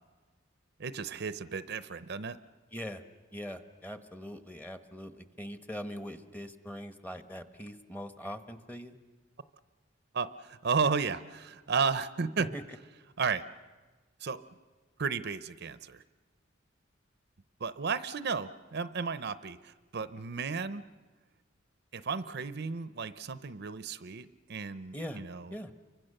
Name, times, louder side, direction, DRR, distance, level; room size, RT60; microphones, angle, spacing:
voice 1, 0.8-2.4 10.1-12.5 13.2-13.4 14.2-14.4 15.0-16.0 17.6-20.8 21.9-25.5, right 5 dB, 60° right, 13 dB, 0.7 m, -33 dB
voice 2, 2.7-3.0 3.3-9.0 12.5-12.6 24.9-25.2 25.5-25.7, equal, 10° left, 8 dB, 1.1 m, -42 dB
29.5 x 24.5 x 6.6 m, 1.3 s
head